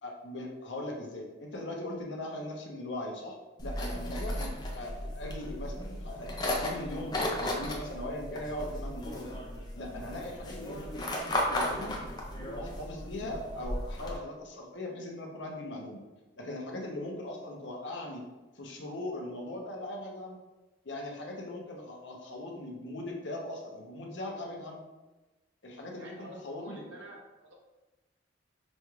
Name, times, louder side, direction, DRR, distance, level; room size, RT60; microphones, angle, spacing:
voice 1, 0.0-9.4 9.8-12.0 12.3-16.0 16.4-18.2 18.5-20.4 20.8-24.8 25.6-26.9, left 1 dB, 65° left, 0 dB, 0.7 m, -40 dB
sound 1, 3.6-14.2, left 1 dB, 20° left, 0.5 m, -35 dB
voice 2, 26.0-27.5, equal, 75° right, -1 dB, 0.9 m, -48 dB
5.2 x 2.3 x 3.1 m, 1.1 s
head